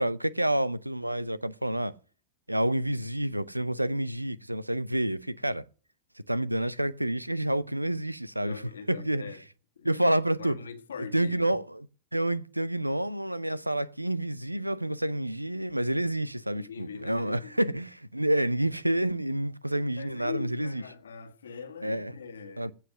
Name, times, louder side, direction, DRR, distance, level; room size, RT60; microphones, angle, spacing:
voice 1, 0.0-2.0 2.5-5.6 6.3-8.6 8.9-9.3 9.8-10.5 11.1-11.9 12.1-20.8 21.8-22.1 22.6-22.7, right 1 dB, 85° right, 0.6 m, -28 dB
voice 2, 8.4-9.4 9.7-10.1 10.3-11.6 16.5-17.8 20.0-22.7, left 6 dB, 70° left, 1.7 m, -42 dB
16.0 x 5.8 x 6.3 m
figure-of-eight pair, 90°, 0 cm